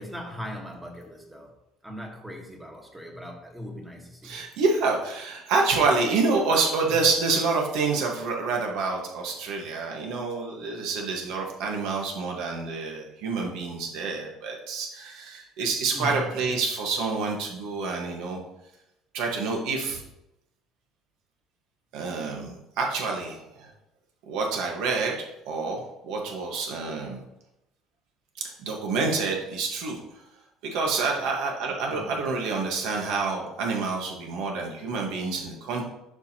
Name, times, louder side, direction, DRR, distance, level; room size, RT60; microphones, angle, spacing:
voice 1, 0.0-1.5 1.8-4.4 5.4-5.5 15.9-16.3 31.2-31.3 31.9-32.2, left 1 dB, 5° right, 1 dB, 1.3 m, -39 dB
voice 2, 4.2-18.4 19.1-20.0 21.9-23.7 24.3-25.2 25.4-27.2 28.4-30.0 30.6-35.9, right 4 dB, 75° right, 0 dB, 1.5 m, -27 dB
11.5 x 4.9 x 2.9 m, 0.88 s
cardioid pair, 145°, 0 cm